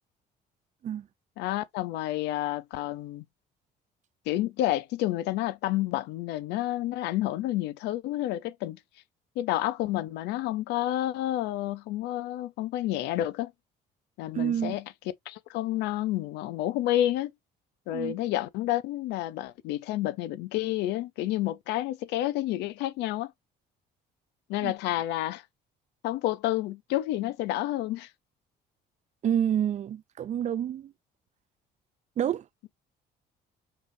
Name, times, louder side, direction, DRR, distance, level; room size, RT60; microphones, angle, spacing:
voice 1, 1.4-3.2 4.3-8.8 9.4-13.5 14.2-14.8 15.3-17.3 17.9-23.3 24.5-25.4 26.0-28.1, left 14 dB, 85° left, 0.6 m, -29 dB
voice 2, 14.3-14.8 17.9-18.1 24.6-24.7 29.2-30.9 32.2-32.4, right 9 dB, 45° right, 0.5 m, -28 dB
5.4 x 3.2 x 2.7 m
cardioid pair, 110°, 17 cm